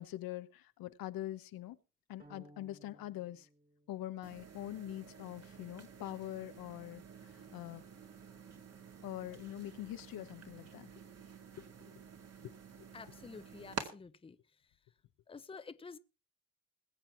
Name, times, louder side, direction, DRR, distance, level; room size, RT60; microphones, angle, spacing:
voice 1, 0.0-1.8 2.1-3.5 3.9-7.8 9.0-10.9 11.8-11.9 12.4-12.5, left 14 dB, 85° left, 1.0 m, -44 dB
sound 1, 2.2-4.5, right 1 dB, 25° right, 2.4 m, -61 dB
sound 2, 4.2-13.9, right 6 dB, 45° right, 2.1 m, -50 dB
voice 2, 12.9-14.4 15.3-16.0, left 5 dB, 15° left, 0.6 m, -50 dB
21.0 x 7.6 x 4.4 m
cardioid pair, 100°, 34 cm